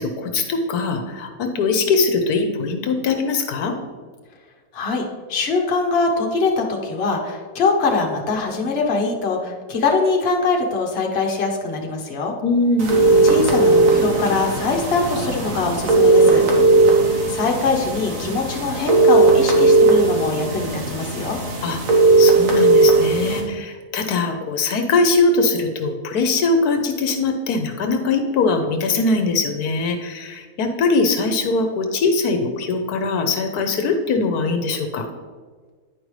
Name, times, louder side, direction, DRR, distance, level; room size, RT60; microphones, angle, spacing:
voice 1, 0.0-3.7 12.4-13.1 21.6-21.8 22.2-35.1, left 3 dB, 80° left, 5 dB, 1.2 m, -21 dB
voice 2, 4.7-12.4 13.2-16.4 17.3-21.4, left 4 dB, 45° left, 1 dB, 1.1 m, -22 dB
sound 1, 12.8-23.4, right 2 dB, 60° right, 1.5 m, -17 dB
9.6 x 5.2 x 3.2 m, 1.5 s
omnidirectional pair, 1.6 m